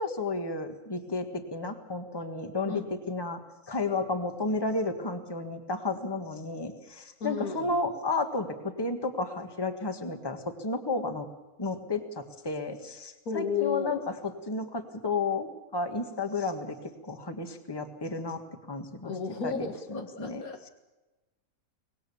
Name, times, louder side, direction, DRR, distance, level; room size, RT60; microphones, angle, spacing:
voice 1, 0.0-3.4 3.7-11.3 11.6-14.0 14.5-16.8 17.0-18.4 18.7-19.1 19.4-20.4, left 3 dB, 15° left, 7 dB, 1.6 m, -32 dB
voice 2, 7.2-7.7 13.3-14.0 19.0-20.7, left 5 dB, 80° left, 5 dB, 2.3 m, -33 dB
24.5 x 19.5 x 7.0 m, 1.1 s
omnidirectional pair, 1.5 m